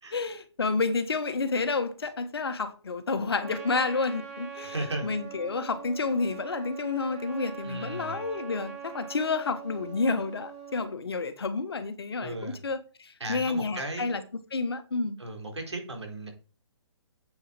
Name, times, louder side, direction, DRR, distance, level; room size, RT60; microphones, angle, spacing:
voice 1, 0.1-14.2 14.5-15.2, left 4 dB, 55° left, 1.6 m, -30 dB
Trumpet, 3.4-11.0, right 7 dB, 30° right, 3.4 m, -43 dB
voice 2, 4.6-5.1 7.6-8.2 12.2-12.6 13.2-14.1 15.2-16.3, right 2 dB, 70° right, 4.2 m, -36 dB
9.0 x 8.1 x 4.7 m
figure-of-eight pair, 135°, 15 cm